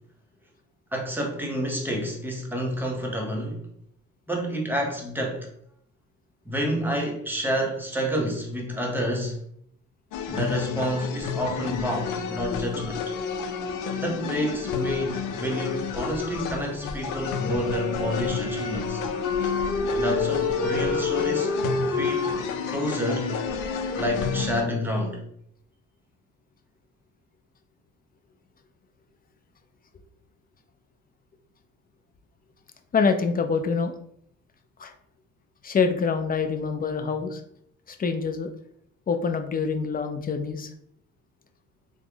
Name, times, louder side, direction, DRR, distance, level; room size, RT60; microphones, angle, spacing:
voice 1, 0.9-3.7 4.3-5.5 6.4-9.4 10.3-13.0 13.9-19.0 19.9-21.5 21.8-22.3 22.7-23.3 24.0-25.2, equal, 5° right, 1 dB, 0.8 m, -29 dB
sound 1, 10.1-24.6, left 5 dB, 90° left, 0.5 m, -31 dB
Wind instrument woodwind instrument, 17.4-25.1, left 4 dB, 60° left, 0.9 m, -29 dB
voice 2, 32.9-33.9 34.8-34.9 35.6-37.4 37.9-38.5 39.1-40.7, left 5 dB, 30° left, 7 dB, 0.4 m, -25 dB
3.4 x 2.0 x 3.4 m, 0.69 s
cardioid pair, 90°, 30 cm